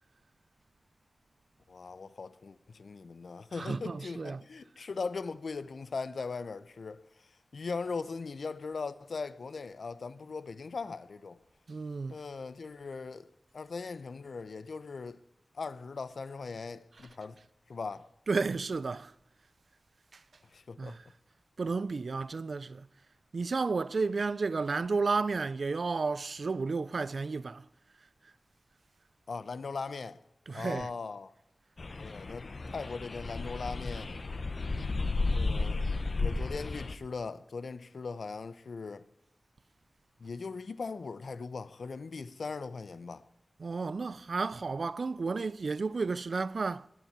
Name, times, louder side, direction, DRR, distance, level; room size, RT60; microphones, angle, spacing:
voice 1, 1.7-7.3 7.5-11.4 12.1-13.3 13.5-15.2 15.5-17.4 17.7-18.1 20.5-21.0 29.3-30.2 30.5-31.3 32.0-34.1 35.3-35.8 36.2-39.1 40.2-43.2, left 4 dB, 80° left, 0.8 m, -39 dB
voice 2, 3.6-4.4 11.7-12.1 18.3-19.1 20.1-20.2 20.8-21.0 21.6-22.9 23.3-27.6 30.5-30.9 43.6-46.9, right 4 dB, 70° right, 0.5 m, -32 dB
sound 1, 31.8-36.9, left 3 dB, 55° left, 1.1 m, -33 dB
20.5 x 7.3 x 9.5 m
wide cardioid pair, 85°, 0 cm